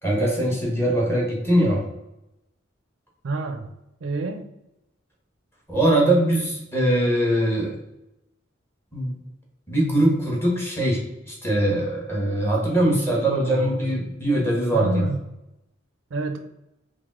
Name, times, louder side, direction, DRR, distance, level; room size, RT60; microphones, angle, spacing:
voice 1, 0.0-1.9 5.7-7.8 8.9-9.2 9.7-15.1, right 1 dB, 10° left, -2 dB, 1.1 m, -22 dB
voice 2, 3.2-3.7 4.0-4.5 12.8-13.9 14.7-15.2 16.1-16.4, right 3 dB, 75° right, 6 dB, 0.4 m, -29 dB
4.8 x 2.0 x 3.6 m, 0.88 s
head